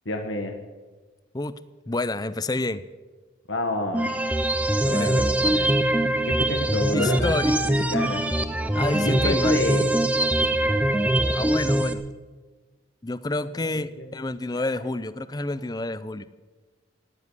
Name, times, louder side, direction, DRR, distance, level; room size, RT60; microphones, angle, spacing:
voice 1, 0.1-0.5 3.5-4.1 4.8-5.7 6.3-7.3 7.6-8.3 9.0-10.0 14.0-14.1 14.5-14.7, left 1 dB, 75° left, 4 dB, 1.6 m, -28 dB
voice 2, 1.9-2.8 4.9-5.1 6.9-7.6 8.7-9.6 11.3-12.0 13.0-16.2, left 2 dB, 20° left, 15 dB, 0.5 m, -28 dB
sound 1, 3.9-11.9, right 1 dB, 5° right, 0.7 m, -23 dB
17.5 x 7.3 x 9.8 m, 1.3 s
head